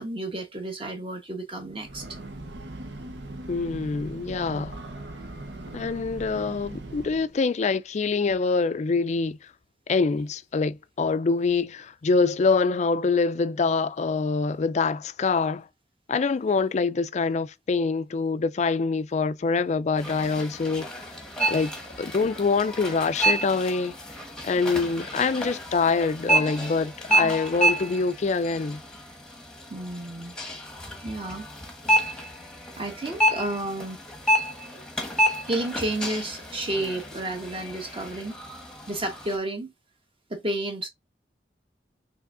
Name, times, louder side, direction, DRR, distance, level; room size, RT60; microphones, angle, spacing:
voice 1, 0.0-2.0 29.7-30.4 31.0-31.5 32.8-34.0 35.5-38.4 38.9-39.7 40.3-40.9, right 1 dB, 30° right, 1.2 m, -31 dB
Breathing / Train, 1.6-7.4, right 2 dB, 75° right, 0.9 m, -40 dB
voice 2, 3.5-4.8 5.7-9.4 9.9-15.7 16.1-21.1 21.5-21.7 22.0-23.9 24.4-28.8, left 4 dB, 40° left, 0.4 m, -25 dB
sound 1, 19.9-39.4, right 1 dB, 5° left, 1.0 m, -29 dB
5.8 x 3.4 x 2.5 m
head